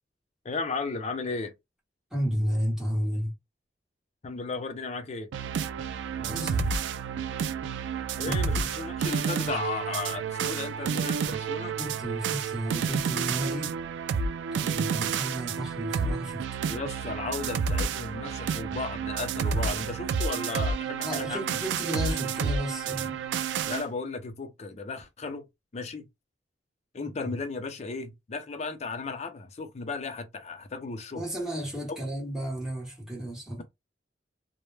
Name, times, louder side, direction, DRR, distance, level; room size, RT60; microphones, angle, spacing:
voice 1, 0.4-1.5 4.2-5.3 8.2-11.8 16.7-21.6 23.6-25.4 25.7-26.0 26.9-31.2, left 3 dB, 40° left, 0.5 m, -35 dB
voice 2, 2.1-3.3 6.2-6.7 8.2-8.6 11.8-13.8 14.5-16.4 21.0-23.2 27.2-27.4 31.1-33.6, equal, 5° right, 1.0 m, -32 dB
sound 1, 5.3-23.8, right 6 dB, 90° right, 0.3 m, -30 dB
2.1 x 2.1 x 3.1 m
head